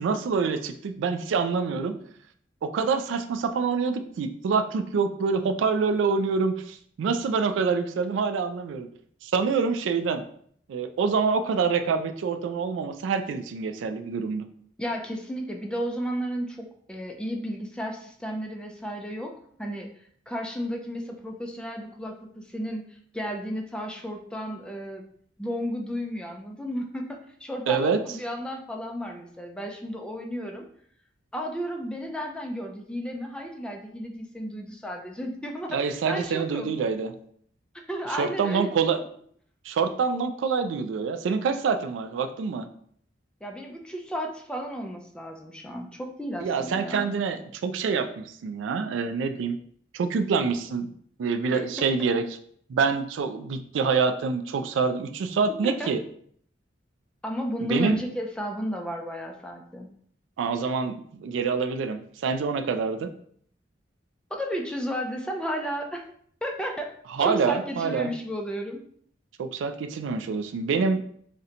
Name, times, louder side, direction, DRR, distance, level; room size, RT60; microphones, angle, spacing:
voice 1, 0.0-2.0 2.6-8.9 9.2-10.2 10.7-14.5 27.7-28.0 35.7-37.1 38.2-39.0 39.7-42.7 46.4-49.6 49.9-50.9 51.2-52.2 52.7-56.0 57.6-57.9 60.4-63.1 67.1-68.1 69.4-71.0, right 5 dB, 80° right, 8 dB, 0.3 m, -26 dB
voice 2, 14.8-19.3 19.6-19.9 20.3-22.9 23.1-25.0 25.4-30.7 31.3-36.7 37.9-38.7 43.4-47.1 51.5-51.9 55.6-55.9 57.2-59.9 64.3-66.0 66.4-66.9 67.2-68.8, equal, 5° left, 2 dB, 0.3 m, -33 dB
2.8 x 2.2 x 3.7 m, 0.62 s
head